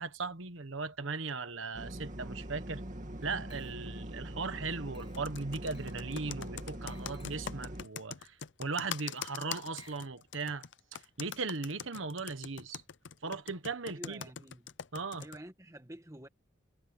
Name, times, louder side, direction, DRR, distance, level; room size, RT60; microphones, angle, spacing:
voice 1, 0.0-2.8 3.2-10.6 10.9-12.8 13.2-14.2 14.9-15.2, right 4 dB, 85° right, 1.3 m, -38 dB
sound 1, 1.7-7.8, right 1 dB, 40° right, 2.4 m, -43 dB
Glass, 3.2-4.1 4.9-5.3 5.7-6.0 6.9-7.6 8.9-11.0, left 4 dB, 30° left, 4.4 m, -63 dB
Computer keyboard, 5.1-15.4, left 8 dB, 65° left, 0.6 m, -43 dB
voice 2, 13.8-14.7 15.2-16.3, right 1 dB, 15° right, 1.9 m, -49 dB
head